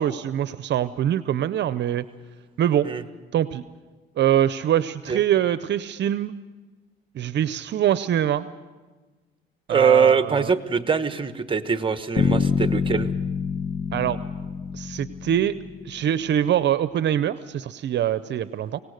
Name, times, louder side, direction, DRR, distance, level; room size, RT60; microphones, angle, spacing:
voice 1, 0.0-2.0 2.6-2.9 3.3-3.6 4.2-6.3 7.1-8.5 9.7-10.5 13.9-14.2 14.7-15.5 15.8-18.8, right 10 dB, 60° right, 14 dB, 0.6 m, -23 dB
voice 2, 9.7-13.1, right 6 dB, 25° right, 10 dB, 1.1 m, -22 dB
Bass guitar, 12.2-16.2, left 6 dB, 35° left, 1.2 m, -26 dB
24.5 x 18.0 x 6.5 m, 1.3 s
cardioid pair, 90°, 20 cm